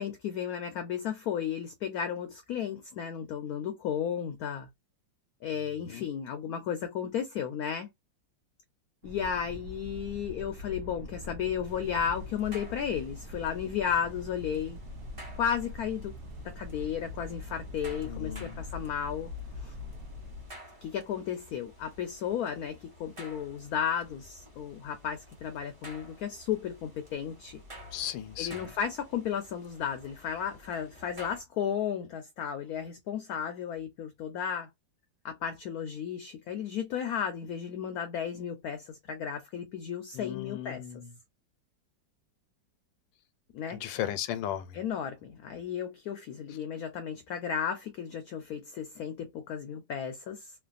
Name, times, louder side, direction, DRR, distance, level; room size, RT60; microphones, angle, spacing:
voice 1, 0.0-4.7 5.4-7.9 9.0-14.8 15.3-16.1 16.4-19.3 19.6-19.7 20.8-27.6 28.4-34.7 35.2-40.8 43.5-43.8 44.7-50.5, left 8 dB, 75° left, 0.9 m, -34 dB
sound 1, 9.0-20.5, left 2 dB, 75° right, 1.2 m, -43 dB
sound 2, 11.6-31.4, equal, 25° right, 0.8 m, -52 dB
voice 2, 18.0-18.6 27.9-28.7 40.1-41.1 43.7-44.8, left 11 dB, 90° left, 1.3 m, -36 dB
3.1 x 2.2 x 2.4 m
omnidirectional pair, 2.0 m